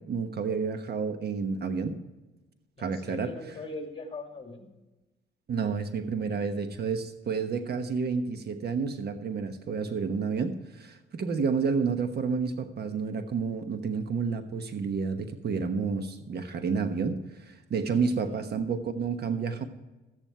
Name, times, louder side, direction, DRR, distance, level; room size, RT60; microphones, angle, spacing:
voice 1, 0.0-2.0 2.8-3.3 5.5-19.6, right 5 dB, 55° right, 9 dB, 1.2 m, -30 dB
voice 2, 2.8-4.7 18.0-18.4, left 2 dB, 25° left, 4 dB, 2.4 m, -41 dB
13.5 x 9.2 x 4.5 m, 1.1 s
cardioid pair, 90°, 20 cm